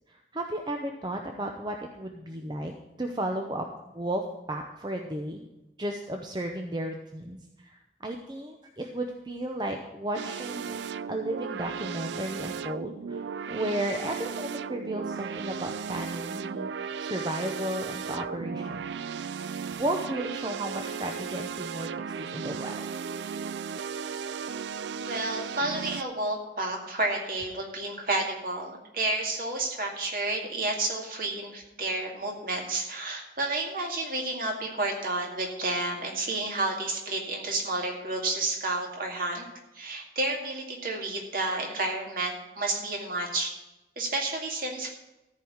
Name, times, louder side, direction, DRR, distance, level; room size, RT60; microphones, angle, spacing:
voice 1, 0.1-2.7 3.0-5.5 5.8-10.8 11.1-16.7 17.0-18.9 19.8-22.9, right 1 dB, 25° right, 3 dB, 0.7 m, -34 dB
sound 1, 10.1-26.0, right 6 dB, 85° right, 0.4 m, -35 dB
voice 2, 25.0-39.5 39.7-43.5 44.0-45.0, right 2 dB, 50° right, 0 dB, 2.3 m, -31 dB
14.0 x 4.7 x 8.7 m, 0.98 s
head